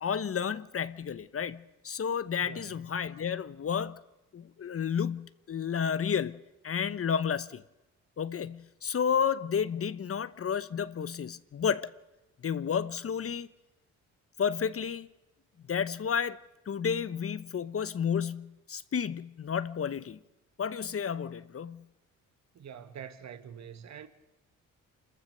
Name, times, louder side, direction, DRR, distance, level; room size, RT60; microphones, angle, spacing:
voice 1, 0.0-4.0 4.3-6.4 6.6-7.6 8.2-11.9 12.4-13.5 14.4-15.1 15.7-16.4 16.7-20.2 20.6-21.8, left 7 dB, 45° left, 0.9 m, -31 dB
voice 2, 2.4-2.8 22.5-24.1, right 8 dB, 55° right, 1.5 m, -45 dB
27.0 x 14.5 x 6.7 m
supercardioid pair, 65°, 33 cm